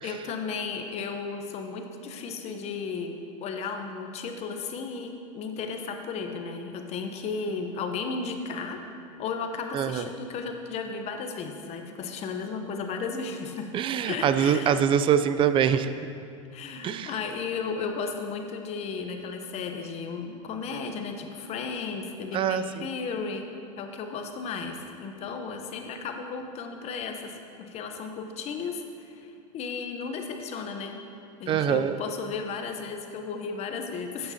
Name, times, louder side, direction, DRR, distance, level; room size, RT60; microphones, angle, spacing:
voice 1, 0.0-8.8 9.2-13.7 14.1-14.8 16.5-31.0 31.4-34.3, left 5 dB, 40° left, 5 dB, 0.9 m, -34 dB
voice 2, 9.7-10.1 13.7-16.0 16.8-17.1 22.3-22.9 31.5-31.9, right 8 dB, 30° right, 12 dB, 0.4 m, -24 dB
11.5 x 8.6 x 2.8 m, 2.5 s
hypercardioid pair, 110°, 17 cm